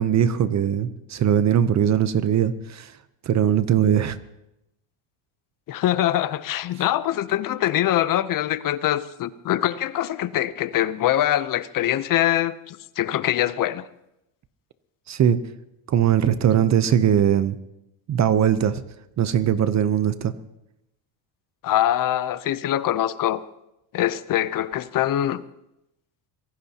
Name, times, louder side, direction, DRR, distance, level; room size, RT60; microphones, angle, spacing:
voice 1, 0.0-2.9 3.3-4.2 15.1-15.4 15.9-17.6 18.1-18.8 19.2-20.3, right 9 dB, 35° right, 0.7 m, -20 dB
voice 2, 5.7-13.8 21.6-23.4 23.9-25.4, left 12 dB, 45° left, 0.7 m, -23 dB
25.0 x 17.0 x 2.9 m
cardioid pair, 125°, 48 cm